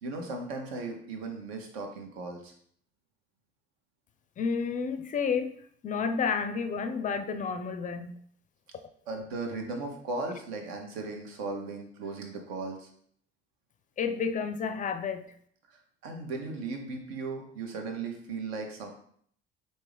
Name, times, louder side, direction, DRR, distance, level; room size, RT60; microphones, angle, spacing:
voice 1, 0.0-2.5 9.1-12.9 15.7-18.9, right 3 dB, 65° right, 3 dB, 0.9 m, -37 dB
voice 2, 4.4-5.5 5.8-8.1 14.0-15.2, left 5 dB, 25° left, 9 dB, 0.4 m, -30 dB
4.4 x 2.7 x 3.4 m, 0.62 s
figure-of-eight pair, 50°, 32 cm